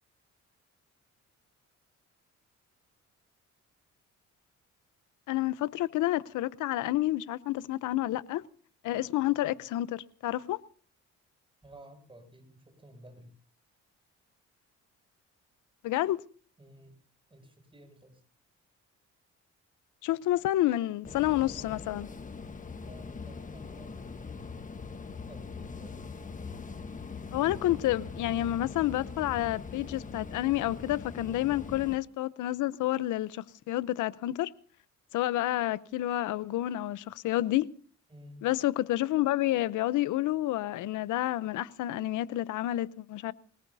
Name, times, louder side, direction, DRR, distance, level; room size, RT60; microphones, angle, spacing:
voice 1, 5.3-8.4 8.8-10.6 15.8-16.2 20.0-22.1 27.3-34.5 35.1-37.7 38.4-43.3, left 15 dB, 85° left, 0.8 m, -29 dB
voice 2, 11.6-13.3 16.6-16.9 17.3-18.2 22.8-24.5 25.2-26.0 31.4-31.8 38.1-38.5, equal, 15° right, 6.4 m, -53 dB
sound 1, 21.0-32.0, left 4 dB, 25° left, 1.3 m, -42 dB
25.5 x 18.5 x 2.7 m
cardioid pair, 90°, 30 cm